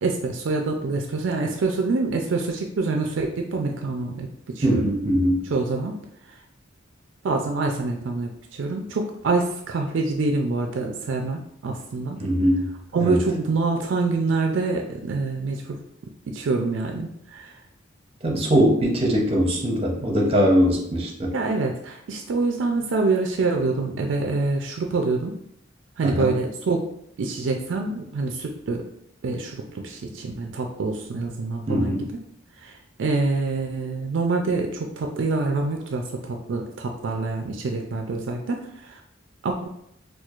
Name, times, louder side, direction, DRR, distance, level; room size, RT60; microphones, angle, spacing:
voice 1, 0.0-4.3 4.5-4.9 5.5-5.9 7.2-12.2 12.9-15.8 16.3-17.5 21.3-25.3 26.0-26.9 27.2-28.9 29.2-32.0 32.6-32.7 33.0-39.0 39.4-39.7, right 3 dB, 65° right, 3 dB, 0.4 m, -26 dB
voice 2, 4.6-5.5 12.2-12.7 12.9-13.2 18.2-21.3 26.0-26.3 31.7-32.1, equal, 30° right, -1 dB, 0.6 m, -21 dB
4.4 x 2.3 x 2.4 m, 0.73 s
head